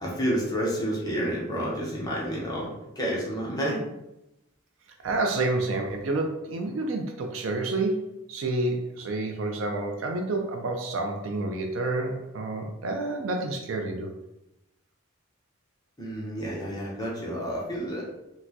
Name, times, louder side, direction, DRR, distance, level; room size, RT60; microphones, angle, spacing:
voice 1, 0.0-2.7 3.0-3.8 16.0-18.0, equal, 20° left, -5 dB, 0.7 m, -29 dB
voice 2, 5.0-14.1, right 2 dB, 70° right, 3 dB, 0.4 m, -29 dB
4.2 x 2.1 x 2.7 m, 0.91 s
head